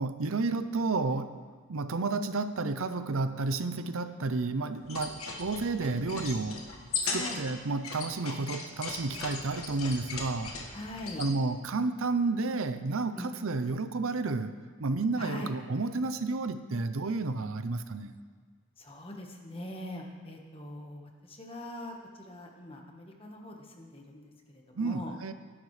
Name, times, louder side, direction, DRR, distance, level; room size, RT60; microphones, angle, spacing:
voice 1, 0.0-1.3 1.7-6.6 7.1-10.5 11.2-18.1 24.8-25.3, right 3 dB, 70° right, 10 dB, 0.6 m, -31 dB
sound 1, 4.8-11.3, left 4 dB, 85° left, 1.7 m, -38 dB
voice 2, 7.1-7.4 10.7-11.2 13.1-13.3 15.2-15.5 18.8-25.2, left 1 dB, 25° left, 1 dB, 1.4 m, -42 dB
19.0 x 11.0 x 3.3 m, 1.5 s
head